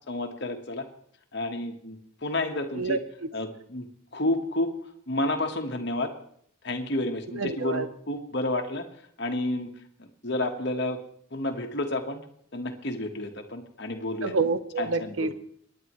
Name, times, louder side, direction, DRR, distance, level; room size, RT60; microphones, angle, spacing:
voice 1, 0.1-0.9 1.3-3.0 3.3-3.9 4.1-4.8 5.1-6.1 6.6-8.8 9.2-9.7 10.0-11.0 11.3-12.2 12.5-14.4 14.8-15.3, left 2 dB, 50° left, 4 dB, 1.3 m, -30 dB
voice 2, 7.3-7.9 14.2-15.3, right 4 dB, 80° right, 12 dB, 0.8 m, -27 dB
26.0 x 10.0 x 3.1 m, 0.66 s
head